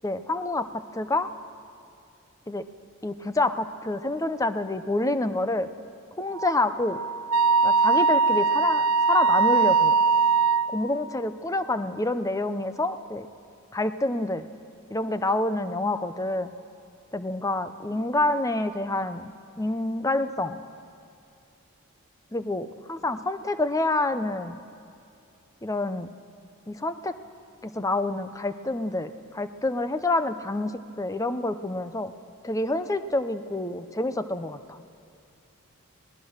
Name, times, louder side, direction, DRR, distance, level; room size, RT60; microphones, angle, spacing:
voice 1, 0.0-1.3 2.5-2.7 3.0-5.7 6.2-7.0 7.6-9.9 10.7-13.3 13.7-14.5 14.9-16.5 17.1-19.3 19.6-20.6 22.3-24.6 25.6-26.1 26.7-27.1 27.6-32.1 32.4-34.8, left 2 dB, 15° left, 11 dB, 0.6 m, -27 dB
Wind instrument woodwind instrument, 6.3-10.7, right 4 dB, 70° right, 0.8 m, -21 dB
25.5 x 18.0 x 6.5 m, 2.6 s
head